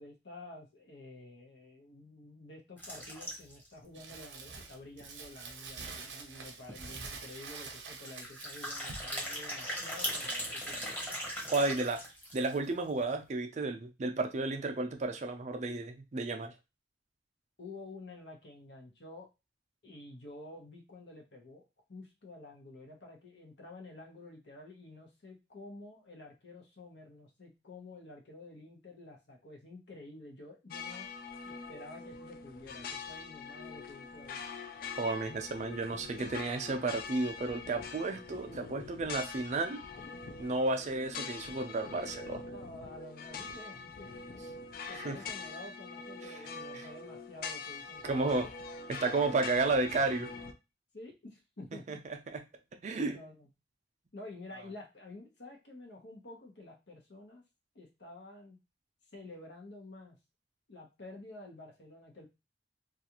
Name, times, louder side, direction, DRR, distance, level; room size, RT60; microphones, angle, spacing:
voice 1, 0.0-10.9 17.6-19.3 19.8-31.1 31.4-34.4 42.4-44.4 44.9-49.2 50.9-52.0 53.0-53.5 54.1-57.4 57.7-58.6 59.1-60.2 60.7-62.3, left 2 dB, 75° left, 1 dB, 0.9 m, -50 dB
sound 1, 2.8-3.7 4.2-4.3 4.5-4.6 5.0-5.1 6.3-6.4 6.7-6.9 8.0-12.6, equal, 10° left, 0.9 m, -39 dB
Crumpling crinkling, 3.9-9.2, right 4 dB, 80° right, 0.7 m, -46 dB
voice 2, 11.5-12.0 12.3-16.5 35.0-39.8 40.4-42.4 44.9-45.2 46.2-46.4 46.7-46.8 48.0-48.5 48.9-50.3 51.9-52.0 52.3-52.4 52.8-53.2, right 3 dB, 40° right, 6 dB, 0.4 m, -32 dB
sound 2, 30.7-50.5, left 5 dB, 55° left, 0.3 m, -44 dB
2.4 x 2.4 x 2.9 m, 0.26 s
head